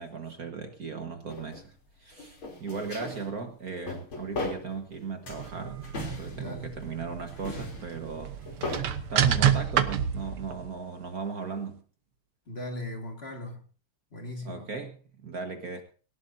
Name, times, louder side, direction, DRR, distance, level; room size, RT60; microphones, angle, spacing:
voice 1, 0.0-1.7 2.0-5.9 6.2-8.3 9.1-11.8 14.5-15.8, right 4 dB, 50° right, 5 dB, 1.8 m, -37 dB
sound 1, 1.3-1.6 2.1-3.3 3.7-5.0 5.3-6.9 7.3-8.9, left 2 dB, 85° left, 4.2 m, -38 dB
sound 2, 5.3-10.7, right 9 dB, 85° right, 1.9 m, -29 dB
voice 2, 6.3-6.9 12.5-13.7 14.1-14.7, left 2 dB, 30° left, 3 dB, 2.3 m, -39 dB
18.5 x 18.0 x 2.7 m, 0.39 s
omnidirectional pair, 2.3 m